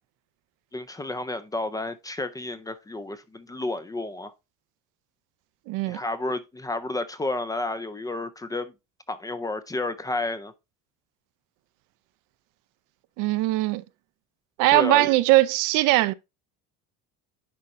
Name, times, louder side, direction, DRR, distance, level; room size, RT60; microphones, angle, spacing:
voice 1, 0.7-4.3 5.9-8.7 9.1-10.5 14.7-15.1, left 2 dB, 10° left, 0.5 m, -31 dB
voice 2, 5.7-6.0 13.2-13.8 14.6-16.1, right 18 dB, 70° right, 0.6 m, -20 dB
10.5 x 4.4 x 2.6 m
cardioid pair, 145°, 33 cm